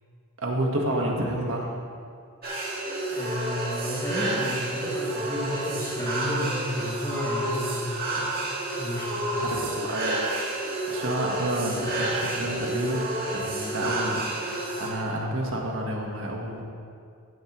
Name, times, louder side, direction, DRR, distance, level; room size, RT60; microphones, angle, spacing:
voice 1, 0.4-1.6 9.4-10.2 10.9-16.6, right 1 dB, 65° right, 0 dB, 1.4 m, -30 dB
voice 2, 0.9-1.5 3.1-8.4 8.8-9.5, equal, 15° left, -6 dB, 2.2 m, -33 dB
sound 1, 2.4-14.9, right 1 dB, 45° right, 1.9 m, -30 dB
15.0 x 9.7 x 3.1 m, 2.4 s
head